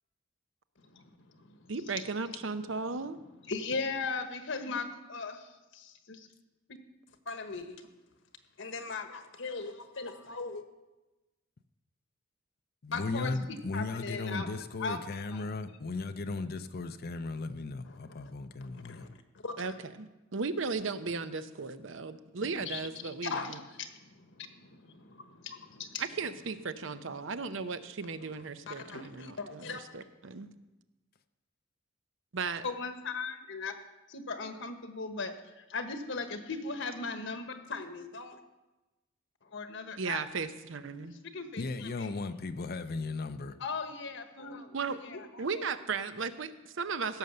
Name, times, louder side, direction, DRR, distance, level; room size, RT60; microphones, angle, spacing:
voice 1, 0.8-2.1 3.4-6.3 7.2-7.9 8.6-10.6 12.9-14.5 14.8-15.0 15.3-15.4 17.9-18.3 18.6-19.8 22.6-26.1 27.2-27.6 28.0-29.8 32.6-33.7 34.1-38.4 39.4-40.2 41.1-42.1 43.6-45.6, left 4 dB, 70° left, 1.2 m, -39 dB
voice 2, 1.7-3.2 19.6-19.7 20.0-23.6 26.0-30.5 32.3-32.6 40.0-41.1 44.7-45.0 45.4-47.2, right 4 dB, 70° right, 0.7 m, -36 dB
voice 3, 12.8-19.1 41.6-43.6, left 3 dB, 50° left, 0.5 m, -36 dB
16.0 x 6.6 x 6.8 m
head